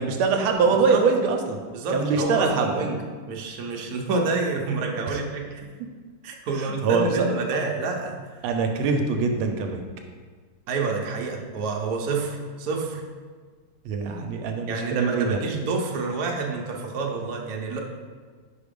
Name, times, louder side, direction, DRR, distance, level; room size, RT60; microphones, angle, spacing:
voice 1, 0.0-1.6 1.9-2.8 5.1-5.2 6.5-7.3 8.4-9.8 13.8-15.4, right 5 dB, 75° right, 4 dB, 1.4 m, -23 dB
voice 2, 1.7-3.0 3.3-5.6 6.2-8.4 10.7-13.0 14.7-17.8, right 3 dB, 60° right, 0 dB, 1.0 m, -28 dB
5.0 x 4.7 x 5.1 m, 1.5 s
omnidirectional pair, 2.4 m